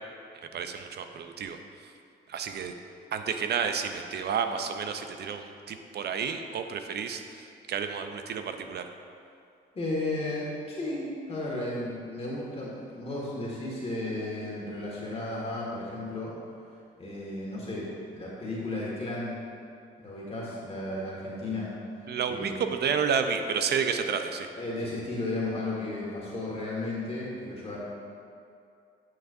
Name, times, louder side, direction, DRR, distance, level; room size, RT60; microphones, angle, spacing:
voice 1, 0.5-1.9 2.3-2.7 3.1-8.9 22.1-24.5, right 6 dB, 55° right, 7 dB, 0.6 m, -31 dB
voice 2, 9.7-16.3 17.0-19.4 20.0-21.7 22.3-22.6 24.6-27.8, left 2 dB, 30° left, -6 dB, 1.7 m, -34 dB
9.4 x 6.6 x 2.6 m, 2.5 s
cardioid pair, 90°, 20 cm